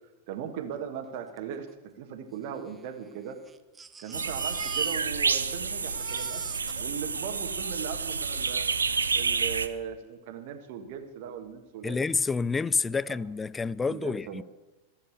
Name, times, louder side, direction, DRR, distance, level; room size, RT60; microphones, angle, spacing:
voice 1, 0.3-1.7 2.0-3.4 4.0-6.4 6.8-8.7 9.1-12.0 12.9-13.0 13.8-14.4, right 8 dB, 50° right, 1.5 m, -38 dB
Crying sobbing, 1.4-1.5 1.7-1.8 2.5-5.4 5.7-8.3 9.1-9.2 9.6-9.7, right 5 dB, 15° right, 0.8 m, -47 dB
sound 1, 4.1-9.7, right 5 dB, 75° right, 0.8 m, -29 dB
voice 2, 11.8-14.4, left 4 dB, 15° left, 0.3 m, -28 dB
15.5 x 7.6 x 7.8 m
figure-of-eight pair, 90°, 0 cm